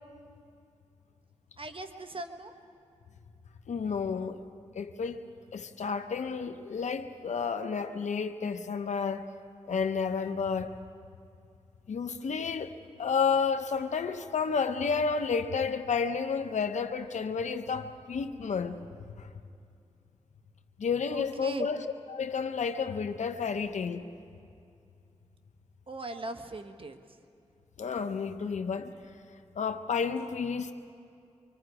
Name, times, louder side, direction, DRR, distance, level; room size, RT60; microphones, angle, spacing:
voice 1, 1.6-2.5 21.1-21.7 25.9-27.0, right 2 dB, 50° right, 1.3 m, -39 dB
voice 2, 3.7-4.4 4.7-5.2 5.5-9.3 9.7-10.7 11.9-12.7 13.0-18.8 19.2-19.3 20.8-21.8 22.1-24.0 27.8-28.9 29.6-30.7, left 5 dB, 90° left, 0.8 m, -31 dB
25.5 x 24.5 x 4.9 m
cardioid pair, 55°, 12 cm